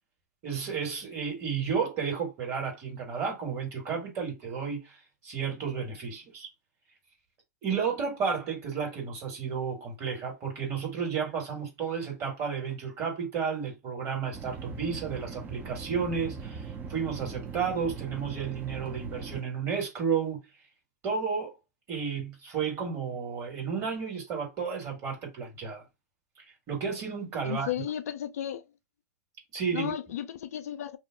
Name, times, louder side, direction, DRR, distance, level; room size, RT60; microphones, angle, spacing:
voice 1, 0.4-5.0 5.2-6.5 7.6-20.4 21.0-21.5 21.9-25.8 26.7-27.7 29.5-29.9, right 6 dB, 35° right, 1.6 m, -32 dB
sound 1, 14.3-19.4, right 5 dB, 20° right, 0.5 m, -40 dB
voice 2, 27.4-28.6 29.7-31.0, left 11 dB, 70° left, 0.3 m, -34 dB
2.7 x 2.1 x 3.5 m
hypercardioid pair, 105°, 9 cm